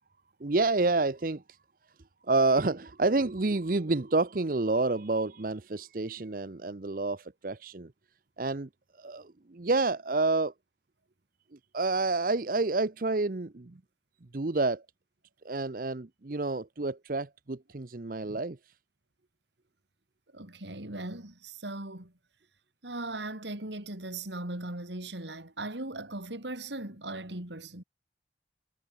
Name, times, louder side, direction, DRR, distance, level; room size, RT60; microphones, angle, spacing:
voice 1, 0.4-1.6 2.3-7.9 8.4-8.7 9.0-10.5 11.7-13.8 14.3-14.8 15.4-18.6, right 3 dB, 50° right, 0.8 m, -29 dB
voice 2, 20.3-22.1 22.8-27.8, right 2 dB, 80° right, 4.0 m, -38 dB
head